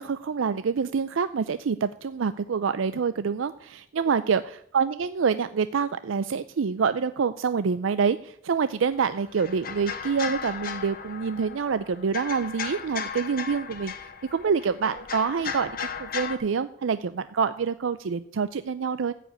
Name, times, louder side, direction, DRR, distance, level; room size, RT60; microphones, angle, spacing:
voice 1, 0.0-4.4 4.7-13.9 14.3-19.1, right 6 dB, 85° right, 13 dB, 0.5 m, -26 dB
sound 1, 8.9-16.4, left 7 dB, 50° left, 1.1 m, -36 dB
14.5 x 5.1 x 8.8 m, 0.70 s
head